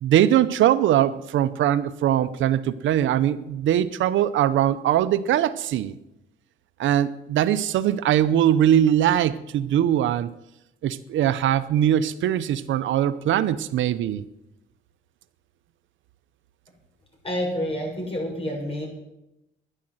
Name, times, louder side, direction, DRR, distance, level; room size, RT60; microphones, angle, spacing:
voice 1, 0.0-5.9 6.8-10.3 10.8-14.2, right 11 dB, 75° right, 14 dB, 0.7 m, -21 dB
voice 2, 17.2-18.9, equal, 30° left, -1 dB, 6.9 m, -28 dB
11.5 x 11.0 x 7.8 m, 0.88 s
cardioid pair, 90°, 20 cm